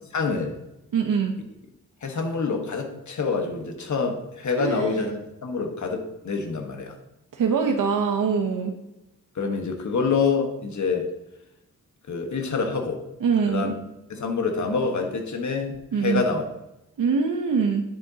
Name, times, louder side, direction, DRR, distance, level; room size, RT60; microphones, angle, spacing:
voice 1, 0.1-0.6 2.0-7.0 9.3-11.1 12.1-13.0 13.5-13.7 14.1-16.5, left 4 dB, 55° left, 4 dB, 1.3 m, -26 dB
voice 2, 0.9-1.3 4.6-4.8 7.3-8.7 13.2-13.7 15.9-16.2 17.0-17.8, right 6 dB, 65° right, 3 dB, 0.9 m, -23 dB
9.7 x 7.7 x 2.8 m, 0.92 s
wide cardioid pair, 135°, 34 cm